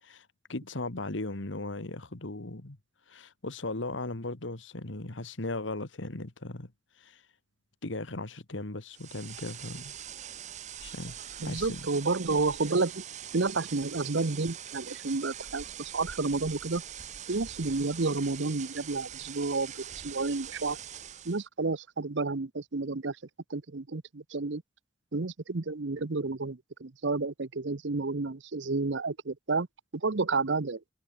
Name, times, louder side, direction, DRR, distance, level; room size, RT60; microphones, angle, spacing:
voice 1, 0.0-2.8 3.1-6.7 7.0-7.2 7.8-9.9 10.8-11.8, left 2 dB, 85° left, 1.9 m, -37 dB
sound 1, 8.9-21.5, right 9 dB, 40° right, 0.8 m, -43 dB
voice 2, 11.4-13.0 13.3-16.8 17.3-20.8 21.2-23.2 23.5-24.6 25.1-29.7 29.9-30.8, right 3 dB, 75° right, 0.9 m, -30 dB
head